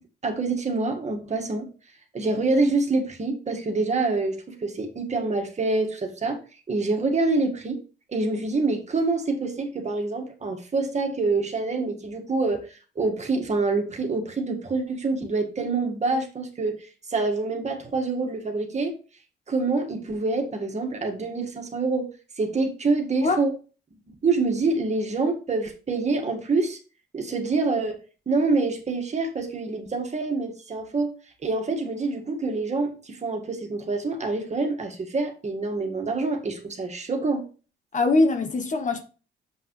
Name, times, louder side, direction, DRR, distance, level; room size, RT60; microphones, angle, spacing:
voice 1, 0.2-1.7 2.1-6.4 6.7-7.8 8.1-12.6 13.0-18.9 19.5-22.0 22.4-23.5 24.2-26.8 27.1-28.0 28.3-31.1 31.4-37.4, right 3 dB, 35° right, 1.8 m, -26 dB
voice 2, 37.9-39.0, left 2 dB, 40° left, 1.0 m, -22 dB
7.1 x 5.9 x 3.2 m
cardioid pair, 90°, 20 cm